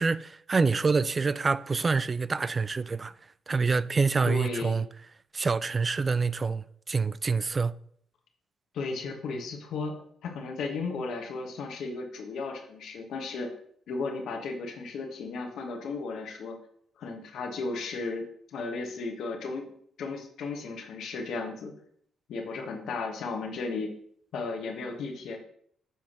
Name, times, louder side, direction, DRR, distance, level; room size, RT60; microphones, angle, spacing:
voice 1, 0.0-3.1 3.5-4.9 5.3-7.7, right 4 dB, 30° right, 0.3 m, -26 dB
voice 2, 4.2-4.8 8.7-10.0 10.2-13.5 13.9-16.6 17.0-19.7 20.0-21.7 22.3-23.9 24.3-25.4, left 3 dB, 75° left, 1.4 m, -35 dB
7.1 x 3.6 x 6.0 m
cardioid pair, 90°, 0 cm